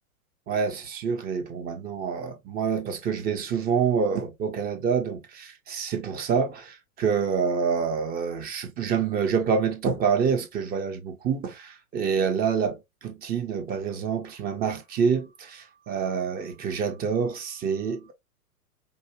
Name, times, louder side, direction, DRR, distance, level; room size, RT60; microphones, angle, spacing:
voice 1, 0.5-18.1, right 6 dB, 20° right, 1.1 m, -27 dB
5.3 x 2.4 x 3.0 m
hypercardioid pair, 120°, 44 cm